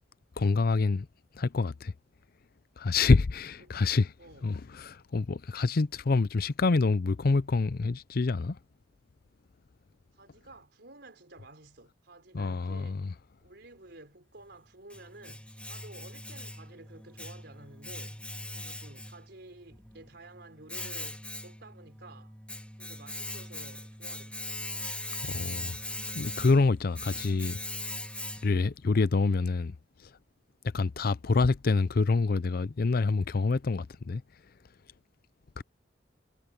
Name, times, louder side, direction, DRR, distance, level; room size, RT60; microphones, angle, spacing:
voice 1, 0.4-1.1 1.3-1.9 2.8-4.1 4.4-8.6 12.3-13.1 25.2-25.8 26.1-27.6 28.4-29.8 30.7-34.2 35.6-35.7, left 3 dB, 55° left, 0.5 m, -26 dB
voice 2, 4.2-4.5 10.1-13.0 13.4-18.2 18.5-22.4 22.8-24.6, right 2 dB, 65° right, 4.9 m, -52 dB
Domestic sounds home sounds, 14.4-28.7, left 1 dB, 5° left, 3.1 m, -41 dB
head